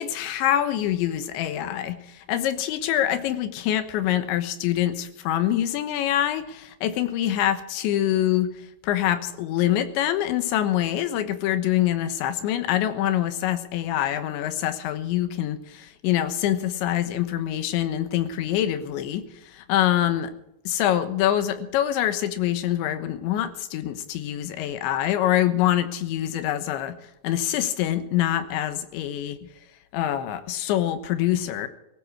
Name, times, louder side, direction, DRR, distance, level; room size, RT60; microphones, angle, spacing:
voice 1, 0.0-8.6 8.8-20.3 20.7-27.0 27.2-29.5 29.9-31.7, left 12 dB, 85° left, 10 dB, 3.5 m, -25 dB
18.5 x 16.0 x 4.8 m, 0.85 s
omnidirectional pair, 5.1 m